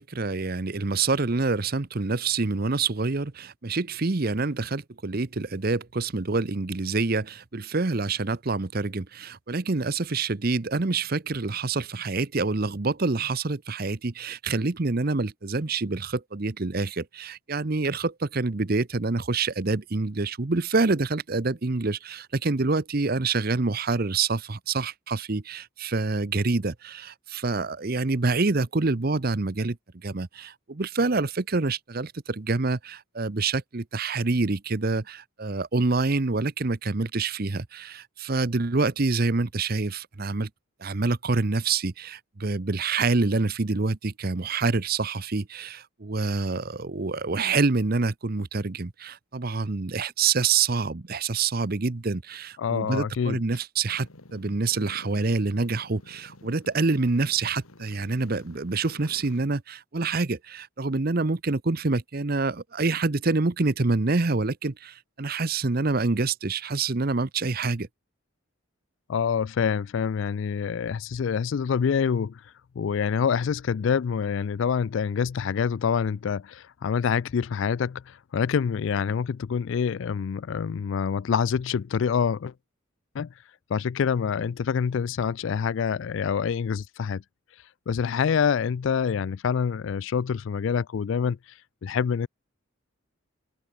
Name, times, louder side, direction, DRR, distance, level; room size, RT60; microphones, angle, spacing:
voice 1, 0.0-29.8 30.0-40.5 40.8-67.9, right 3 dB, 45° right, 0.8 m, -26 dB
voice 2, 52.6-53.4 69.1-72.4 72.8-82.5 83.1-83.3 83.7-87.2 87.9-91.4 91.8-92.3, left 6 dB, 60° left, 0.3 m, -26 dB
sound 1, 53.9-59.5, left 2 dB, 90° left, 3.1 m, -50 dB
open air
head